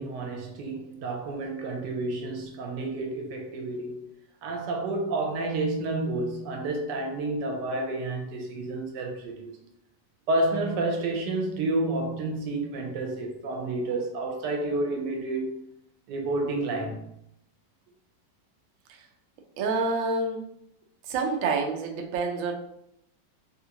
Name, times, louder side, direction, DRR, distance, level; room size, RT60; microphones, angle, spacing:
voice 1, 0.0-4.0 4.4-9.5 10.3-15.6 16.1-17.0, right 2 dB, 85° right, 1.3 m, -30 dB
voice 2, 19.6-20.5 21.0-22.5, right 3 dB, 70° right, 0.8 m, -28 dB
3.5 x 2.5 x 2.8 m
omnidirectional pair, 1.8 m